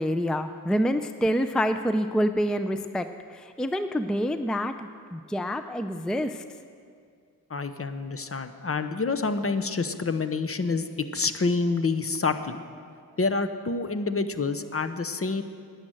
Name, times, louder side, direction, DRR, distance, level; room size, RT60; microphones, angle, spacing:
voice 1, 0.0-6.4, equal, ahead, 9 dB, 0.5 m, -27 dB
voice 2, 7.5-10.9 11.1-12.6 13.2-15.4, left 4 dB, 35° left, 9 dB, 0.8 m, -27 dB
10.5 x 9.9 x 7.7 m, 2.2 s
cardioid pair, 55°, 38 cm